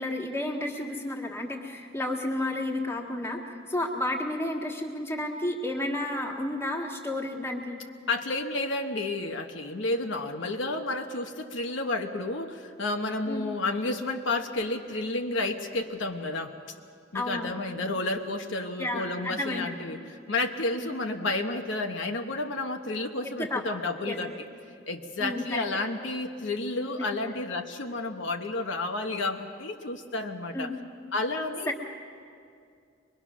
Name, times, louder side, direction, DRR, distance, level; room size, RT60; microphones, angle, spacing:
voice 1, 0.0-3.4 3.7-7.8 13.3-13.5 17.1-17.6 18.8-19.7 20.8-20.9 23.4-23.6 24.0-24.4 25.2-25.6 30.5-30.8, left 1 dB, 15° left, 0 dB, 1.8 m, -31 dB
voice 2, 8.1-16.5 17.1-24.3 24.9-30.7 31.1-31.8, left 2 dB, 70° left, 4 dB, 1.1 m, -31 dB
23.0 x 22.0 x 6.2 m, 2.4 s
head